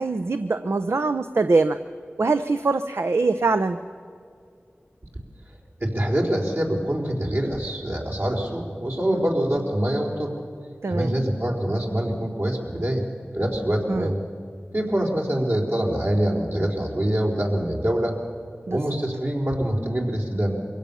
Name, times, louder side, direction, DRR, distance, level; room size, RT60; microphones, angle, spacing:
voice 1, 0.0-1.8 2.2-3.8 9.1-9.2 10.8-11.1 13.9-14.1 18.7-18.8, right 3 dB, 80° right, 9 dB, 0.6 m, -23 dB
voice 2, 5.8-10.3 10.9-13.0 13.3-14.2 14.7-18.2 18.7-20.6, right 1 dB, 60° right, -1 dB, 4.2 m, -25 dB
23.0 x 16.5 x 7.0 m, 2.3 s
wide cardioid pair, 40°, 4 cm